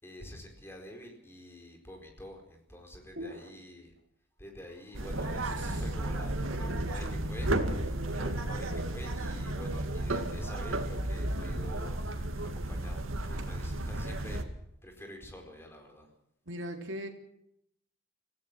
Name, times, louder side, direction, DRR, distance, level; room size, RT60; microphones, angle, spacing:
voice 1, 0.0-3.9 4.4-14.4 14.8-16.1, equal, 10° left, 3 dB, 4.7 m, -48 dB
voice 2, 3.2-3.5 5.6-5.8 6.4-7.3 16.5-17.1, equal, 65° right, 4 dB, 3.6 m, -41 dB
sound 1, 4.9-14.4, right 1 dB, 85° right, 2.3 m, -33 dB
25.5 x 17.0 x 6.2 m, 0.73 s
head